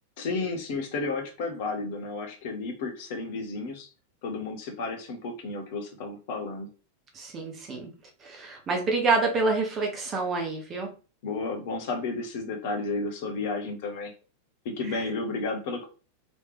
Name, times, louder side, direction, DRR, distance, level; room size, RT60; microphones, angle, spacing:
voice 1, 0.2-3.9 4.2-6.7 11.2-14.1 14.6-15.9, left 3 dB, 50° left, 4 dB, 0.9 m, -32 dB
voice 2, 7.1-7.9 8.2-10.9, right 3 dB, 25° right, 2 dB, 1.1 m, -27 dB
3.2 x 3.1 x 3.1 m, 0.34 s
figure-of-eight pair, 90°, 0 cm